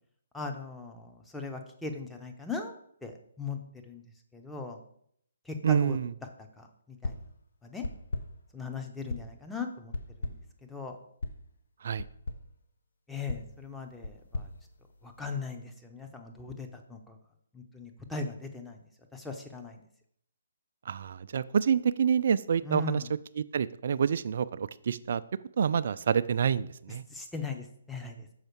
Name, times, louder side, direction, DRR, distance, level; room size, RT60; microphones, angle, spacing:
voice 1, 0.3-2.7 3.0-3.1 3.4-3.6 3.9-4.0 4.3-4.8 5.5-6.0 6.6-7.2 7.6-7.8 8.5-9.9 10.2-10.3 10.7-11.0 13.1-14.5 15.0-17.2 17.5-18.8 19.1-19.8 22.7-23.0 27.1-28.2, left 4 dB, 5° left, 3 dB, 0.7 m, -38 dB
voice 2, 5.6-6.1 11.8-12.1 20.9-23.0 23.3-25.2 25.6-27.0, right 7 dB, 50° right, 15 dB, 0.3 m, -27 dB
sound 1, 7.0-7.4 7.8-8.5 9.1-9.5 9.9-10.6 11.2-11.5 12.0-12.5 13.3-15.3, left 2 dB, 60° left, 0.7 m, -38 dB
6.4 x 4.8 x 4.6 m, 0.68 s
figure-of-eight pair, 135°, 0 cm